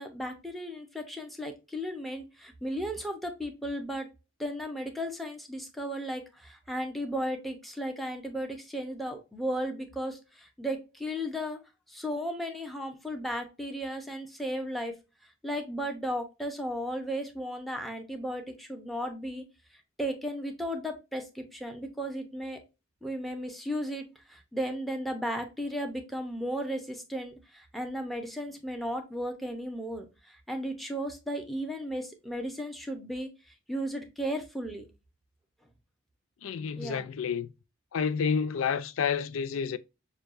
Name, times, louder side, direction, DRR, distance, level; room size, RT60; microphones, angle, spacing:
voice 1, 0.0-4.1 4.4-11.6 11.9-14.9 15.4-19.4 20.0-22.6 23.0-33.3 33.7-34.9 36.8-37.1, equal, ahead, 0.8 m, -35 dB
voice 2, 36.4-37.5 37.9-39.8, left 6 dB, 70° left, 0.4 m, -29 dB
6.5 x 2.3 x 2.5 m
head